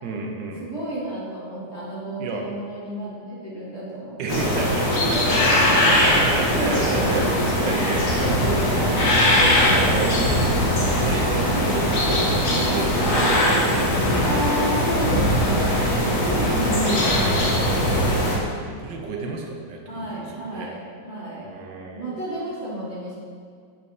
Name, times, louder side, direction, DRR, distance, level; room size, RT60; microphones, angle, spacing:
voice 1, 0.0-0.7 2.2-2.5 4.2-5.6 5.9-8.2 9.6-14.6 16.5-17.2 18.6-20.7 21.4-22.2, right 3 dB, 75° right, 1 dB, 1.6 m, -31 dB
voice 2, 0.6-4.5 4.9-5.0 5.2-5.5 6.6-6.7 7.6-9.5 12.5-12.8 14.2-17.8 19.9-21.5 22.0-23.1, right 1 dB, 35° left, -9 dB, 2.5 m, -32 dB
sound 1, 4.3-18.4, left 1 dB, 55° left, 1.8 m, -20 dB
8.2 x 6.8 x 3.3 m, 2.1 s
omnidirectional pair, 2.0 m